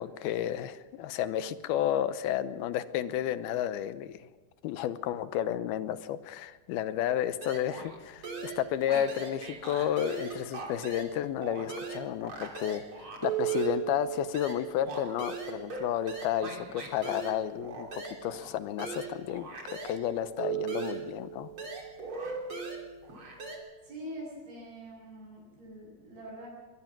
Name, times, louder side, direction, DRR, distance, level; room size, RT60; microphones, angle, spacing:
voice 1, 0.0-4.3 4.6-21.5, left 11 dB, 85° left, 13 dB, 2.8 m, -32 dB
sound 1, 7.4-8.0 8.2-11.2 11.4-20.0 20.4-23.6, right 7 dB, 35° right, 3.8 m, -38 dB
voice 2, 23.8-26.5, equal, 85° right, -8 dB, 8.9 m, -44 dB
22.0 x 20.0 x 6.0 m, 1.2 s
omnidirectional pair, 4.3 m